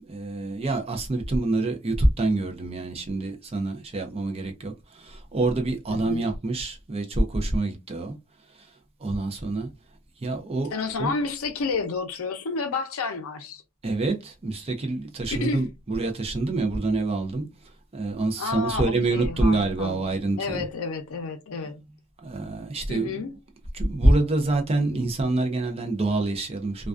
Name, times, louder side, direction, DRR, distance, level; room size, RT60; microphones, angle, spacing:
voice 1, 0.1-8.2 9.0-9.7 10.2-11.1 13.8-17.5 17.9-20.6 22.2-23.2 23.7-26.9, right 2 dB, 25° right, 0.4 m, -26 dB
voice 2, 5.9-6.3 10.7-13.6 15.3-15.6 18.4-20.0 20.4-21.8 22.9-23.3, left 4 dB, 70° left, 0.5 m, -30 dB
2.3 x 2.2 x 2.4 m
head